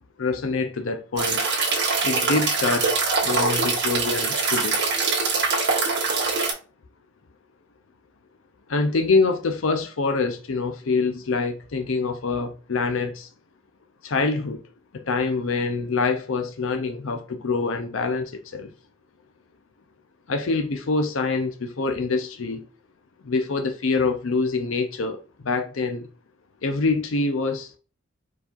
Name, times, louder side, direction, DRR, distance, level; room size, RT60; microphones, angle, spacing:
voice 1, 0.2-1.4 2.0-2.9 3.2-4.8 8.7-13.3 14.0-14.6 14.9-18.7 20.3-22.7 23.2-26.1 26.6-27.7, left 3 dB, 80° left, 0.6 m, -25 dB
sound 1, 1.2-6.5, right 4 dB, 60° right, 1.6 m, -23 dB
4.8 x 4.1 x 2.5 m
head